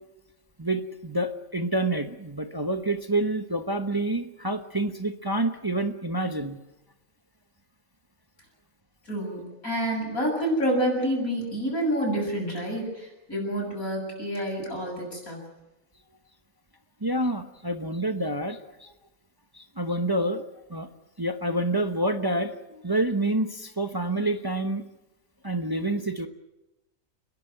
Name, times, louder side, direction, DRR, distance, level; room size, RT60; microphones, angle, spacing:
voice 1, 0.6-6.6 17.0-18.9 19.5-20.4 20.7-20.9 21.2-24.8 25.4-26.3, right 1 dB, 20° right, 7 dB, 1.0 m, -28 dB
voice 2, 9.1-15.5, equal, 90° left, 0 dB, 7.7 m, -28 dB
29.5 x 11.5 x 9.5 m, 0.96 s
omnidirectional pair, 1.5 m